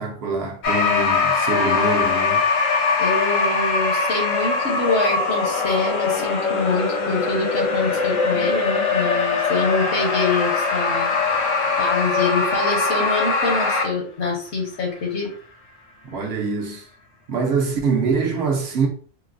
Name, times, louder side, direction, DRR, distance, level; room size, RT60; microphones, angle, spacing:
voice 1, 0.0-2.4 16.0-16.9 17.3-18.9, right 4 dB, 60° right, 0.8 m, -24 dB
sound 1, 0.6-13.8, left 4 dB, 90° left, 1.1 m, -21 dB
voice 2, 3.0-11.1 11.8-15.3, left 3 dB, 65° left, 1.2 m, -25 dB
4.5 x 2.0 x 2.5 m
omnidirectional pair, 1.3 m